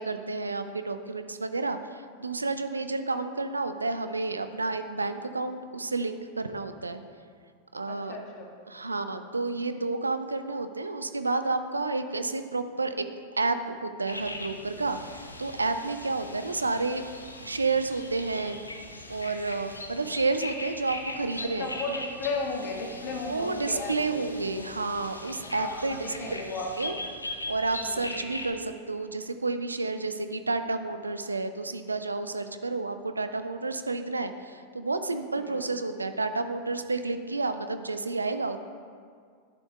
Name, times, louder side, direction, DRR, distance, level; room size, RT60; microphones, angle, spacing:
voice 1, 0.0-7.0 7.7-8.2 8.7-13.1 13.4-17.0 17.4-18.6 19.1-21.7 23.3-26.4 26.8-27.0 27.5-38.6, right 3 dB, 80° right, 10 dB, 0.4 m, -30 dB
voice 2, 7.9-8.6 16.2-16.4 21.4-24.7 25.4-27.1 27.8-28.0 35.3-35.6, left 3 dB, 45° left, 0 dB, 1.5 m, -35 dB
sound 1, 14.1-28.5, left 2 dB, 85° left, 0.7 m, -40 dB
11.5 x 9.6 x 2.3 m, 2.1 s
figure-of-eight pair, 90°, 0 cm